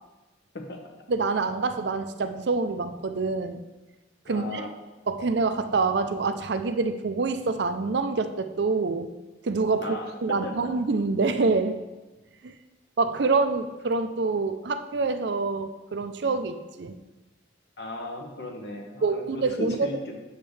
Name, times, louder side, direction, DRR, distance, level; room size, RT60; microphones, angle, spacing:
voice 1, 1.1-3.6 4.3-4.7 5.1-9.1 9.4-11.8 12.4-12.5 13.0-17.0 19.0-19.9, right 4 dB, 65° right, 9 dB, 0.5 m, -26 dB
voice 2, 4.3-4.7 9.8-10.7 17.8-20.2, left 2 dB, 65° left, 2 dB, 1.1 m, -36 dB
8.7 x 6.5 x 3.3 m, 1.1 s
head